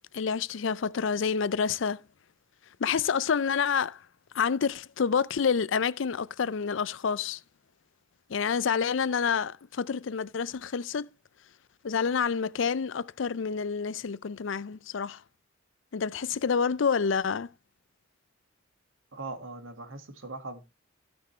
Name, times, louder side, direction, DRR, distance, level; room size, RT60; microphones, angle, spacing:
voice 1, 0.1-2.0 2.8-4.0 4.3-7.4 8.3-11.1 11.8-15.2 15.9-17.5, left 6 dB, 65° left, 0.5 m, -28 dB
voice 2, 19.1-20.7, right 3 dB, 75° right, 1.9 m, -40 dB
16.0 x 6.3 x 3.2 m
head